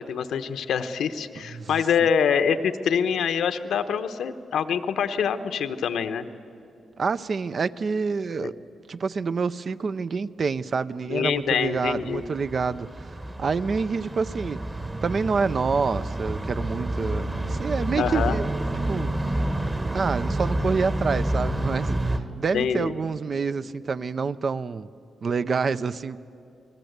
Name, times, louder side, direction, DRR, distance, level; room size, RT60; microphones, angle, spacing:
voice 1, 0.0-6.3 8.4-8.5 11.1-12.2 17.9-18.4 22.5-22.9, left 7 dB, 85° left, 10 dB, 1.0 m, -25 dB
voice 2, 7.0-8.5 8.9-14.6 15.0-18.5 18.9-19.2 19.9-24.9 25.2-26.2, right 5 dB, 45° right, 14 dB, 0.5 m, -27 dB
sound 1, 11.8-22.2, right 1 dB, 20° right, 1.3 m, -29 dB
28.5 x 19.5 x 8.0 m, 2.7 s
cardioid pair, 105°, 0 cm